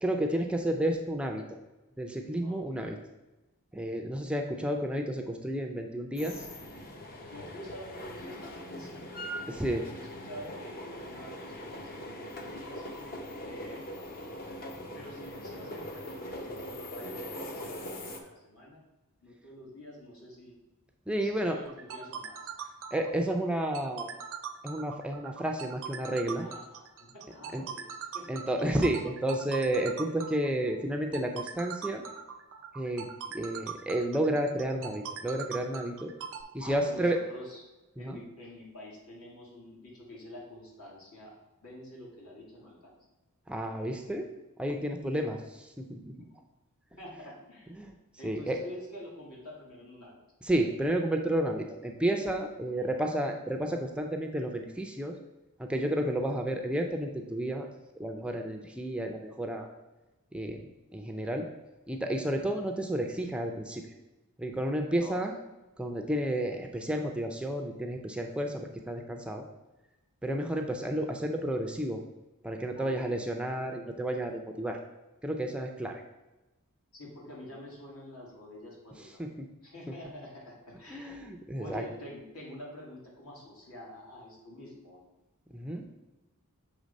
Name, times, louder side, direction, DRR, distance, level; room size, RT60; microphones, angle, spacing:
voice 1, 0.0-1.4 2.0-3.0 3.7-6.4 9.5-9.8 21.1-21.6 22.9-24.1 24.6-26.5 27.5-27.6 28.3-32.0 32.8-33.1 33.3-36.1 36.5-37.2 38.0-38.2 43.5-44.3 44.6-46.1 47.8-47.9 48.2-48.6 50.4-55.1 55.6-57.7 58.0-59.7 60.3-60.6 60.9-61.5 61.9-63.8 64.4-65.4 65.8-69.4 70.2-72.0 72.4-74.8 75.2-76.0 79.2-79.5 80.9-81.8 85.5-85.8, right 1 dB, 5° right, 3 dB, 0.4 m, -31 dB
sound 1, 6.2-18.2, equal, 40° left, 0.7 m, -41 dB
voice 2, 7.3-9.4 9.7-12.9 13.4-14.0 14.9-18.8 19.2-20.6 21.2-22.7 26.4-28.3 36.6-37.6 37.9-41.3 41.6-42.9 47.0-47.7 48.2-50.2 52.5-52.9 65.0-65.2 72.7-72.9 76.9-79.4 79.6-81.2 81.6-85.0, left 1 dB, 75° left, -4 dB, 2.1 m, -47 dB
sound 2, 21.7-36.4, right 7 dB, 60° right, 0.5 m, -41 dB
6.4 x 3.3 x 5.1 m, 1.1 s
head